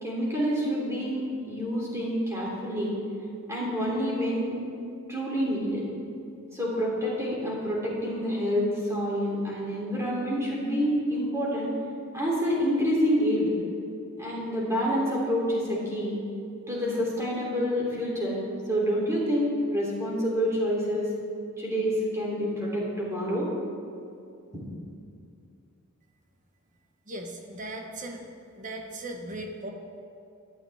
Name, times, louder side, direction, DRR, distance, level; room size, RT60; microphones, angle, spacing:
voice 1, 0.0-3.0 3.5-4.6 5.1-5.9 6.5-11.8 12.1-13.5 14.2-16.2 16.7-18.4 18.7-21.1 21.6-23.5, equal, 15° right, -5 dB, 3.3 m, -27 dB
voice 2, 27.1-28.2 28.6-29.7, right 1 dB, 35° right, 3 dB, 1.3 m, -37 dB
17.5 x 12.0 x 3.6 m, 2.5 s
head